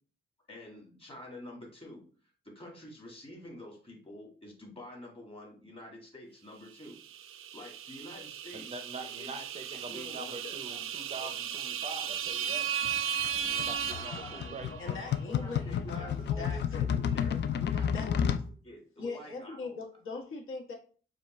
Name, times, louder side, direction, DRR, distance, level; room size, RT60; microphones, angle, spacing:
voice 1, 0.5-2.0 2.4-7.0 7.3-10.8 11.2-11.3 13.9-18.4 18.6-19.8, left 1 dB, 25° left, -1 dB, 1.6 m, -48 dB
sound 1, 6.9-14.9, right 8 dB, 80° right, 0.4 m, -36 dB
voice 2, 8.5-12.7 13.4-14.7, right 3 dB, 30° right, 7 dB, 0.5 m, -44 dB
sound 2, 12.8-18.5, left 8 dB, 55° left, 0.4 m, -31 dB
voice 3, 14.8-17.2 17.9-18.1 19.0-20.7, left 3 dB, 75° left, 0 dB, 1.3 m, -41 dB
5.0 x 2.3 x 4.2 m, 0.41 s
cardioid pair, 120°, 21 cm